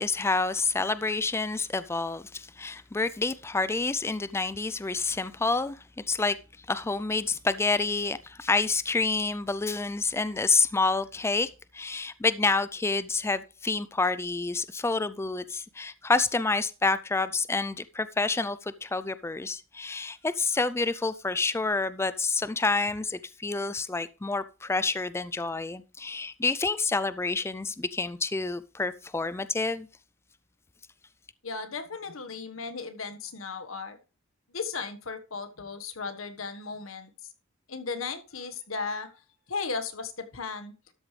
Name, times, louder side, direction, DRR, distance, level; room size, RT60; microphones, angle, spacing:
voice 1, 0.0-6.4 6.7-29.9, left 3 dB, 15° left, 0.4 m, -28 dB
voice 2, 31.4-34.0 34.5-37.3 37.7-39.2 39.5-40.7, left 4 dB, 80° left, 1.4 m, -36 dB
12.5 x 8.1 x 3.3 m
head